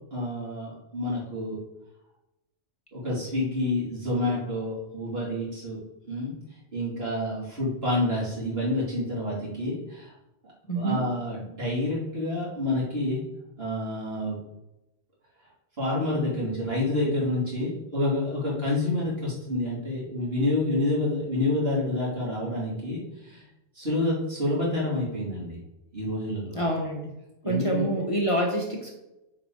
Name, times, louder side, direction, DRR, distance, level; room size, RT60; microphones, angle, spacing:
voice 1, 0.1-1.6 2.9-5.8 6.1-6.3 6.7-10.1 10.7-13.2 13.6-14.4 15.8-23.4 23.7-25.6 25.9-26.6 27.4-28.0, left 1 dB, 55° right, -6 dB, 3.1 m, -28 dB
voice 2, 10.6-11.0 26.5-27.1 27.4-28.9, right 1 dB, 30° left, -2 dB, 1.1 m, -27 dB
9.4 x 4.9 x 3.9 m, 0.92 s
omnidirectional pair, 1.2 m